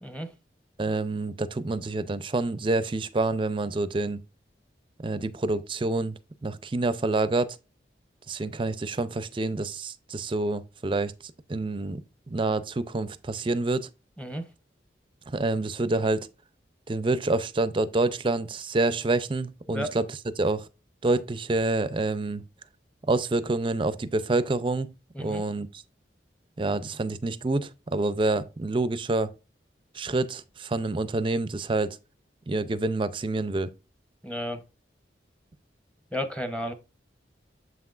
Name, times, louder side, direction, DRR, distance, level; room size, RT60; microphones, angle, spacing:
voice 1, 0.0-0.3 14.2-14.4 19.7-19.9 25.1-25.4 34.2-34.6 36.1-36.7, equal, 5° left, 0.8 m, -32 dB
voice 2, 0.8-4.2 5.0-7.6 8.3-11.1 11.5-13.9 15.3-16.3 16.9-20.0 20.4-20.7 21.0-22.4 23.1-24.9 25.2-25.7 26.6-29.3 29.9-32.0 32.5-33.7, right 2 dB, 30° right, 0.5 m, -27 dB
7.5 x 5.9 x 2.4 m
head